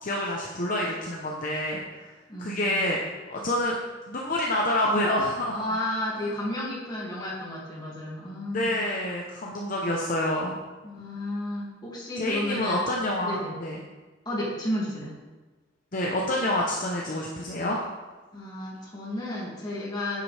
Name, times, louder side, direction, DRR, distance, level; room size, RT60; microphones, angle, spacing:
voice 1, 0.0-2.1 2.4-3.0 3.3-3.8 4.1-5.6 8.5-10.6 12.2-13.8 15.9-17.8, left 1 dB, 45° left, -2 dB, 0.9 m, -27 dB
voice 2, 2.3-2.9 5.5-8.7 10.8-12.8 13.2-13.6 14.3-15.1 18.3-20.2, left 1 dB, 20° left, -5 dB, 2.4 m, -32 dB
9.7 x 7.5 x 3.4 m, 1.2 s
head